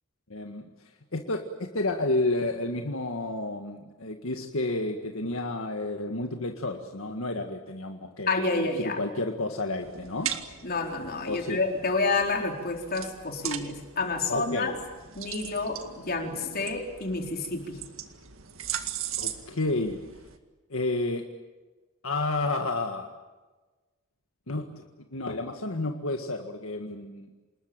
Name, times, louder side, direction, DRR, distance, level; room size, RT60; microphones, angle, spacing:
voice 1, 0.3-0.6 1.1-10.3 11.3-11.6 14.3-14.7 19.2-20.0 20.7-21.2 22.0-23.1 24.5-24.7 25.1-27.3, left 2 dB, 70° left, 4 dB, 1.8 m, -31 dB
voice 2, 8.3-9.0 10.6-14.7 15.1-17.8, left 3 dB, 45° left, 3 dB, 4.2 m, -29 dB
sound 1, 9.8-20.4, right 9 dB, 65° right, 2.0 m, -39 dB
27.5 x 20.5 x 9.0 m, 1.2 s
head